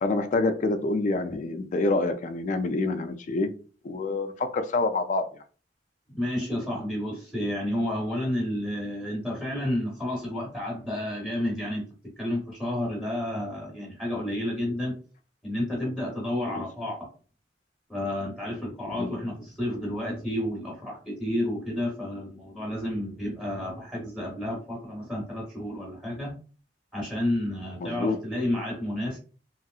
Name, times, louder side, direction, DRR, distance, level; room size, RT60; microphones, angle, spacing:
voice 1, 0.0-3.5 3.8-5.3 16.5-16.6 18.9-19.2 27.8-28.2, left 3 dB, 45° left, 0.4 m, -27 dB
voice 2, 6.1-11.9 12.2-15.0 15.4-17.1 17.9-26.3 26.9-29.2, left 1 dB, 5° left, 0.9 m, -31 dB
3.0 x 2.7 x 2.3 m
head